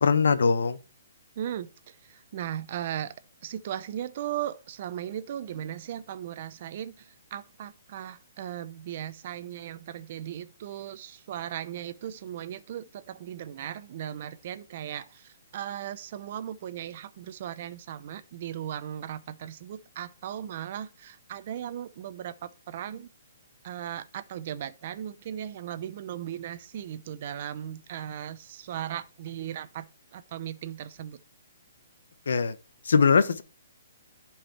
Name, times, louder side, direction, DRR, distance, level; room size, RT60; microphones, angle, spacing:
voice 1, 0.0-0.8 32.3-32.6 32.8-33.4, left 5 dB, 75° left, 1.0 m, -21 dB
voice 2, 1.4-3.1 3.4-23.1 23.6-31.2, right 10 dB, 40° right, 0.7 m, -37 dB
11.0 x 4.8 x 4.3 m
hypercardioid pair, 170°, 0 cm